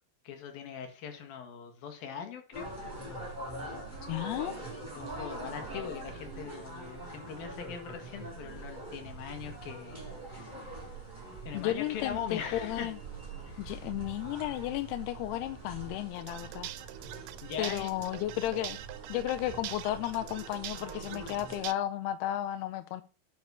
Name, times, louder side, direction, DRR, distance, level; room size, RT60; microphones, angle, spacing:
voice 1, 0.3-2.7 5.0-10.8 11.5-12.9 13.4-13.6 17.4-17.9, left 7 dB, 65° left, 5 dB, 3.6 m, -41 dB
sound 1, 2.5-21.7, right 2 dB, 10° right, 4.5 m, -44 dB
voice 2, 4.0-4.6 11.5-13.0 13.6-16.7 17.6-18.8 19.1-23.0, left 13 dB, 90° left, 11 dB, 2.8 m, -33 dB
sound 2, 16.2-21.7, right 14 dB, 85° right, 2.7 m, -44 dB
9.4 x 7.0 x 6.3 m, 0.33 s
omnidirectional pair, 4.5 m